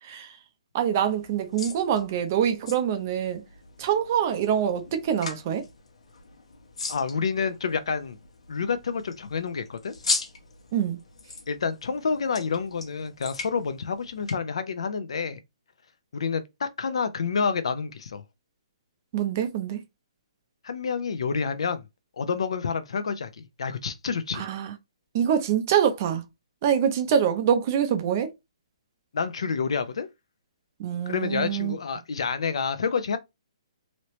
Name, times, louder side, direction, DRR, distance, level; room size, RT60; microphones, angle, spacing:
voice 1, 0.0-0.4 0.7-3.4 3.8-5.6 10.7-11.0 19.1-19.8 24.3-24.7 25.1-26.2 26.6-28.3 30.8-31.8, right 8 dB, 25° right, 0.5 m, -25 dB
sound 1, 1.0-14.3, left 3 dB, 80° left, 0.9 m, -39 dB
voice 2, 6.9-8.2 8.5-9.9 11.5-15.4 16.1-18.2 20.6-21.9 22.2-24.5 29.1-30.1 31.1-33.2, left 5 dB, 60° left, 0.5 m, -28 dB
3.1 x 2.8 x 3.0 m
hypercardioid pair, 175°, 3 cm